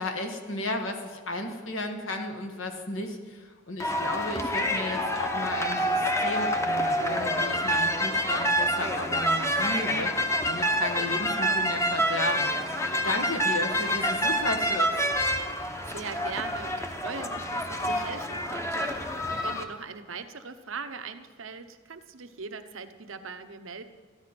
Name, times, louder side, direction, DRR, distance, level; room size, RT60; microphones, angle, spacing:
voice 1, 0.0-10.1 10.5-12.5 12.8-14.9, left 2 dB, 80° left, 4 dB, 1.5 m, -34 dB
sound 1, 3.8-19.6, equal, 15° left, 0.8 m, -27 dB
voice 2, 15.9-23.8, right 5 dB, 85° right, 9 dB, 0.9 m, -40 dB
13.5 x 10.5 x 6.0 m, 1.5 s
head